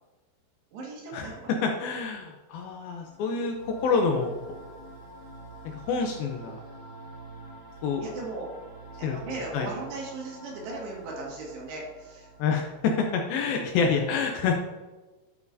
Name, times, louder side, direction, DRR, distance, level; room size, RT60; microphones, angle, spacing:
voice 1, 0.7-1.7 8.0-8.5 9.0-12.3 13.5-14.1, right 3 dB, 80° right, -2 dB, 4.0 m, -38 dB
voice 2, 1.6-4.3 5.9-6.6 7.8-8.0 9.0-9.2 9.5-9.7 12.4-14.5, left 5 dB, 80° left, 2 dB, 2.3 m, -27 dB
sound 1, 2.8-13.2, right 2 dB, 45° left, 1.8 m, -47 dB
12.0 x 7.0 x 2.7 m, 1.2 s
omnidirectional pair, 4.8 m